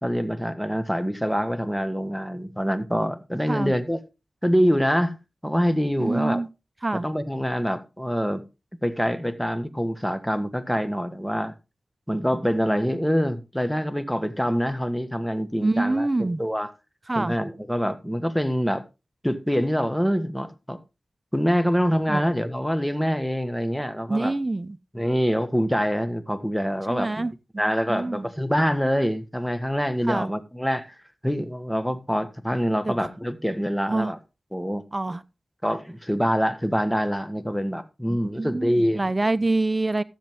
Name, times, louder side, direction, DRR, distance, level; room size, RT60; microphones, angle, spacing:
voice 1, 0.0-4.0 4.4-5.2 5.4-6.4 6.9-8.4 8.8-11.5 12.1-16.7 17.1-18.8 19.2-20.8 21.3-24.3 24.9-27.3 27.6-31.0 31.2-34.2 34.5-34.8 35.6-39.0, equal, 5° left, 1.5 m, -25 dB
voice 2, 6.0-6.5 6.8-7.1 15.6-16.4 17.1-17.3 22.1-22.2 24.1-24.8 26.9-27.3 27.9-28.2 30.1-30.3 32.8-32.9 33.9-34.1 34.9-35.2 38.1-40.0, right 2 dB, 35° right, 0.7 m, -25 dB
13.5 x 7.4 x 3.5 m
cardioid pair, 40°, 0 cm